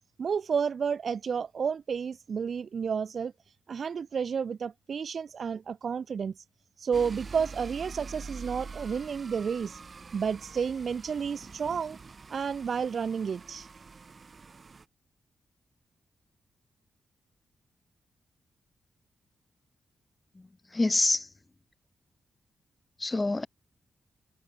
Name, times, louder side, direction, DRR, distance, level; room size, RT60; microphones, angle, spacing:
voice 1, 0.2-3.3 3.7-6.3 6.8-9.8 10.1-12.0 12.3-13.7, right 6 dB, 60° right, 1.6 m, -31 dB
sound 1, 6.9-14.8, right 4 dB, 40° right, 2.5 m, -45 dB
voice 2, 20.3-21.3 23.0-23.5, left 2 dB, 25° left, 1.4 m, -27 dB
cardioid pair, 85°, 0 cm